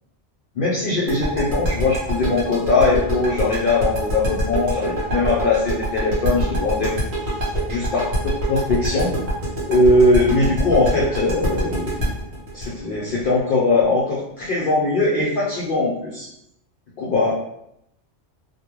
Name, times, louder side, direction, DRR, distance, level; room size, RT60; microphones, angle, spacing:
voice 1, 0.6-6.9 7.7-9.1 9.7-12.0 12.5-16.3 17.0-17.3, left 2 dB, 60° left, -5 dB, 0.6 m, -20 dB
sound 1, 1.1-13.8, right 1 dB, 65° right, 1.2 m, -24 dB
2.3 x 2.2 x 2.9 m, 0.79 s
omnidirectional pair, 1.2 m